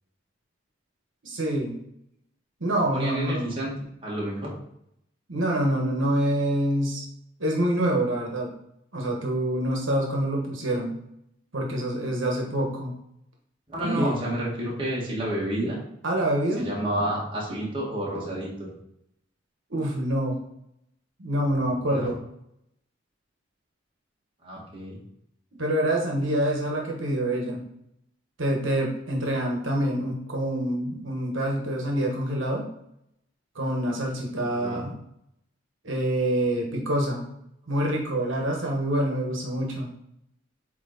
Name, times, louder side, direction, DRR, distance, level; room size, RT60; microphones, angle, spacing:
voice 1, 1.2-1.8 2.6-3.5 5.3-7.0 7.4-8.5 8.9-11.0 11.5-12.9 13.8-14.2 16.0-16.7 19.7-20.4 21.2-22.2 25.6-27.6 28.4-32.7 33.5-34.9 35.8-37.2 37.7-39.9, right 1 dB, 75° right, 0 dB, 1.3 m, -26 dB
voice 2, 2.9-3.7 4.0-4.5 13.7-15.8 16.6-18.7 21.9-22.1 24.4-25.0 34.5-34.8, right 1 dB, 25° right, -5 dB, 1.8 m, -30 dB
8.0 x 3.2 x 4.0 m, 0.78 s
head